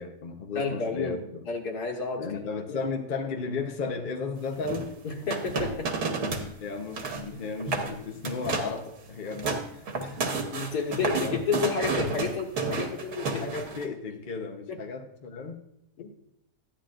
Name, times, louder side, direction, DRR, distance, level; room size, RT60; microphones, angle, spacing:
voice 1, 0.0-1.2 2.2-4.9 6.6-10.2 10.8-11.3 13.2-15.6, left 4 dB, 40° left, 3 dB, 0.9 m, -35 dB
voice 2, 0.6-2.9 5.0-5.9 7.3-7.4 10.5-13.4 14.7-14.8 16.0-16.1, left 5 dB, 90° left, 2 dB, 2.0 m, -31 dB
sound 1, 4.6-6.5 6.8-7.3 7.6-7.9 8.2-8.8 9.1-13.9, right 3 dB, 85° right, 1.7 m, -31 dB
13.5 x 9.8 x 2.5 m, 0.77 s
omnidirectional pair, 1.6 m